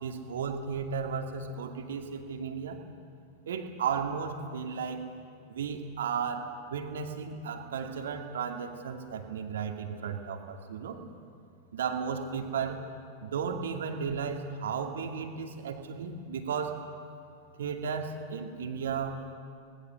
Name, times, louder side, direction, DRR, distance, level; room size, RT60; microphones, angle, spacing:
voice 1, 0.0-2.8 3.5-5.0 5.5-11.0 11.7-12.8 13.2-16.8 17.6-19.3, right 6 dB, 60° right, 4 dB, 2.4 m, -34 dB
27.0 x 20.0 x 6.6 m, 2.4 s
figure-of-eight pair, 90°, 0 cm